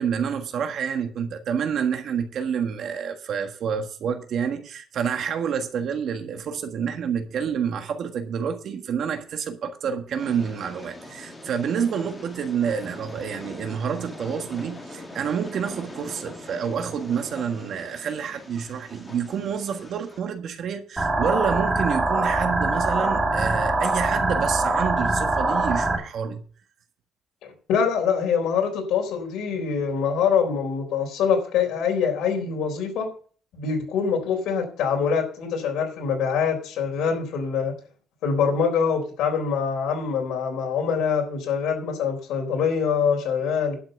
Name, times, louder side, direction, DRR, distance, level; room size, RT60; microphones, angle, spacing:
voice 1, 0.0-26.4, right 7 dB, 55° right, 7 dB, 1.5 m, -28 dB
Train, 10.2-20.2, left 1 dB, 10° left, 2.2 m, -42 dB
sound 1, 21.0-26.0, right 2 dB, 10° right, 2.3 m, -23 dB
voice 2, 27.4-33.1 33.5-37.7 38.2-43.8, left 6 dB, 80° left, 2 dB, 4.0 m, -24 dB
11.5 x 5.9 x 8.0 m, 0.42 s
cardioid pair, 150°, 0 cm